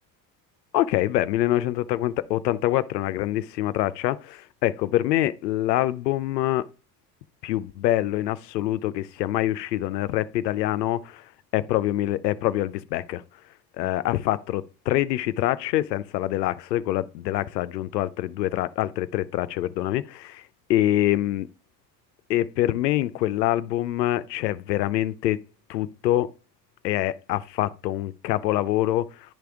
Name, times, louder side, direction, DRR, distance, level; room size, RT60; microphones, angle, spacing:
voice 1, 0.7-6.7 7.4-11.2 11.5-13.2 13.8-20.4 20.7-21.5 22.3-25.4 25.7-26.3 26.8-29.1, left 14 dB, 85° left, 0.6 m, -25 dB
10.5 x 3.4 x 3.4 m
hypercardioid pair, 65°, 48 cm